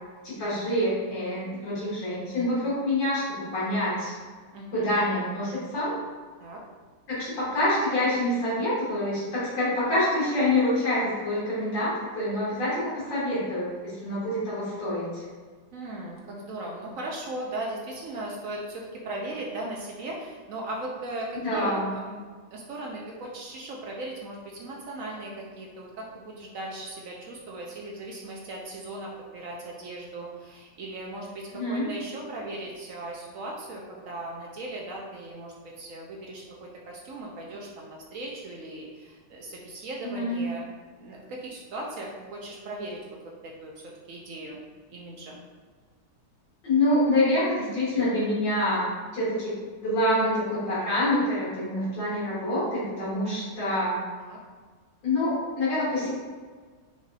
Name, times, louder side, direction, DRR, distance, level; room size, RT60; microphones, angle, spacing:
voice 1, 0.2-4.1 4.7-6.0 7.1-13.7 14.0-15.2 21.3-21.9 31.5-31.9 40.0-40.4 46.6-48.8 49.1-49.5 49.8-54.0 55.0-56.1, left 1 dB, 85° left, -9 dB, 2.3 m, -26 dB
voice 2, 4.5-4.9 6.4-6.6 15.7-40.7 41.0-43.0 43.4-43.7 44.1-44.6 44.9-45.4 54.2-54.4, right 2 dB, 65° right, -1 dB, 0.8 m, -38 dB
5.2 x 3.0 x 2.7 m, 1.5 s
omnidirectional pair, 1.9 m